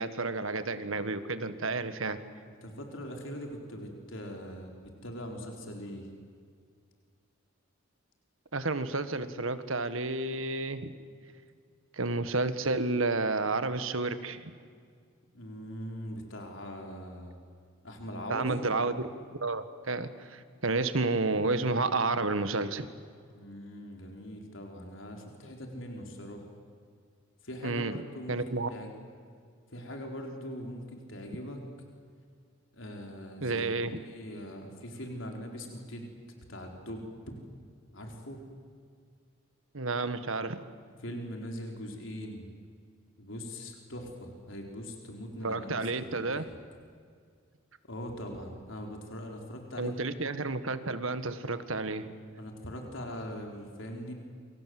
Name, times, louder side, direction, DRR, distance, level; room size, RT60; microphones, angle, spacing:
voice 1, 0.0-2.2 8.5-10.9 11.9-14.5 18.3-19.0 19.3-22.9 27.6-28.0 28.3-28.7 33.4-34.0 39.7-40.6 45.4-46.4 49.8-52.1, right 3 dB, 80° right, 11 dB, 1.7 m, -31 dB
voice 2, 2.6-6.1 15.3-17.4 17.8-18.6 23.3-26.5 27.4-28.4 28.7-29.1 29.7-31.6 32.7-36.1 36.5-37.3 37.9-38.4 41.0-42.5 43.2-45.8 46.0-46.6 47.9-49.9 52.4-54.1, equal, 70° left, 2 dB, 4.1 m, -41 dB
28.5 x 25.5 x 7.8 m, 2.1 s
head